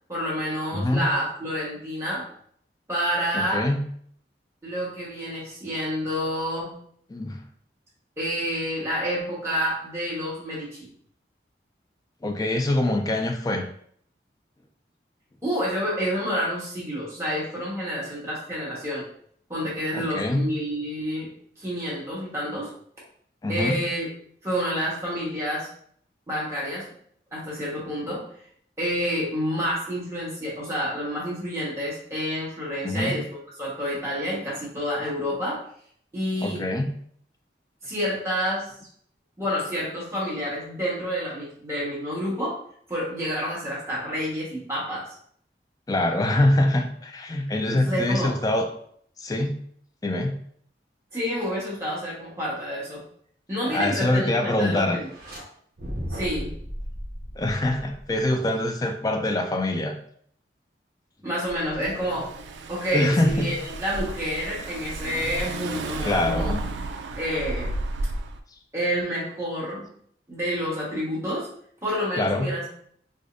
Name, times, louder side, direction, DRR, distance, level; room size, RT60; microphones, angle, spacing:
voice 1, 0.1-2.3 2.9-3.6 4.6-6.7 8.2-10.9 15.4-19.1 19.5-21.3 21.6-22.7 23.5-24.1 24.4-25.7 26.3-26.9 27.3-28.3 28.8-33.2 33.6-35.6 36.1-36.6 37.8-38.7 39.4-42.6 42.9-45.1 47.7-48.3 51.1-53.0 53.5-55.1 56.1-56.5 61.2-62.3 62.7-66.5 67.2-67.7 68.7-69.9 70.3-71.5 71.8-72.7, equal, 15° right, -7 dB, 1.2 m, -29 dB
voice 2, 0.7-1.0 3.3-3.8 7.1-7.4 12.2-13.7 19.9-20.4 23.4-23.8 32.8-33.2 36.4-36.9 45.9-48.7 49.2-49.5 50.0-50.3 53.7-55.0 57.4-60.0 62.9-63.5 66.0-66.6 72.2-72.5, left 1 dB, 20° left, 4 dB, 0.3 m, -24 dB
sound 1, 55.0-55.4 55.8-58.3, equal, 60° right, 0.9 m, -35 dB
Car / Engine, 61.5-68.4, right 2 dB, 80° right, 0.3 m, -33 dB
4.8 x 2.1 x 2.5 m, 0.63 s
head